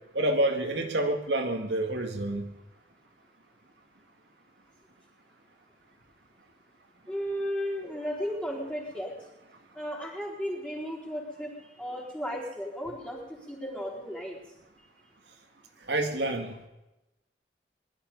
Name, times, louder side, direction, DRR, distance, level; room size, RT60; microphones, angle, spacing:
voice 1, 0.1-2.4 15.9-16.7, right 1 dB, 85° right, 3 dB, 2.1 m, -28 dB
voice 2, 7.1-9.1 9.7-11.5 11.8-14.4, equal, 5° left, -4 dB, 4.1 m, -34 dB
20.5 x 12.0 x 5.4 m, 0.94 s
head